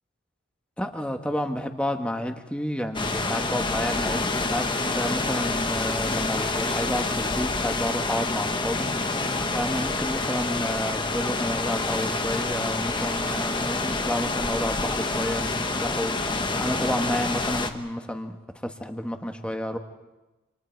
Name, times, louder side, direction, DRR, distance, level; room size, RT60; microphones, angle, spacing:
voice 1, 0.8-4.7 4.9-8.9 9.5-16.1 16.6-18.3 18.6-19.8, left 1 dB, 5° left, 5 dB, 1.5 m, -30 dB
sound 1, 2.9-17.7, left 3 dB, 25° left, 1.2 m, -27 dB
29.0 x 27.0 x 4.7 m, 1.1 s
head